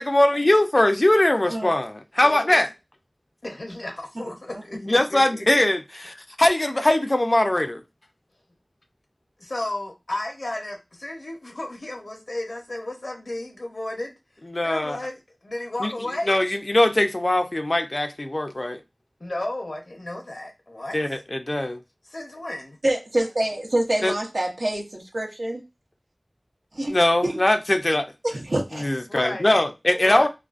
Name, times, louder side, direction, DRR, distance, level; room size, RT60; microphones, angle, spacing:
voice 1, 0.0-2.7 4.8-7.8 14.5-15.0 15.8-15.9 16.3-18.8 20.9-21.8 24.0-24.1 26.9-28.1 28.7-30.3, left 1 dB, 50° left, 0.3 m, -21 dB
voice 2, 2.2-2.6 3.4-5.5 9.4-14.1 14.6-16.4 19.2-21.0 22.1-22.8 29.1-29.6 30.0-30.3, left 1 dB, 80° left, 0.7 m, -33 dB
voice 3, 22.8-25.6 26.7-27.0 27.2-27.4 28.2-28.9, right 1 dB, 85° right, 0.6 m, -26 dB
2.4 x 2.3 x 2.4 m
wide cardioid pair, 45°, 0 cm